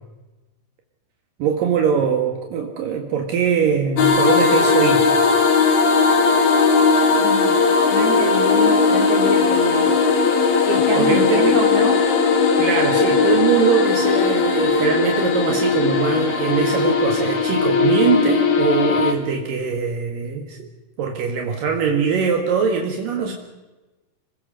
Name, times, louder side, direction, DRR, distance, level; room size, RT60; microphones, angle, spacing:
voice 1, 1.4-5.1 11.0-11.6 12.6-20.7 21.0-23.3, right 6 dB, 70° right, 3 dB, 3.3 m, -22 dB
sound 1, 4.0-19.1, left 4 dB, 55° left, 3.2 m, -17 dB
voice 2, 7.1-7.6 7.9-10.0 10.6-12.1, right 4 dB, 45° right, 2 dB, 4.1 m, -27 dB
26.5 x 20.5 x 6.4 m, 1.1 s
omnidirectional pair, 4.1 m